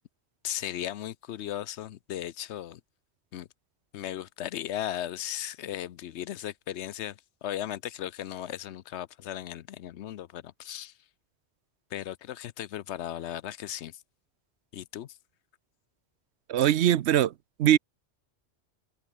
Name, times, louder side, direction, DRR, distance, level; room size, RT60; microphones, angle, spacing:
voice 1, 0.4-2.8 3.3-3.5 3.9-10.9 11.9-14.0 14.7-15.2, left 11 dB, 80° left, 0.9 m, -36 dB
voice 2, 16.5-17.3 17.6-17.8, right 11 dB, 75° right, 0.9 m, -21 dB
open air
omnidirectional pair, 1.2 m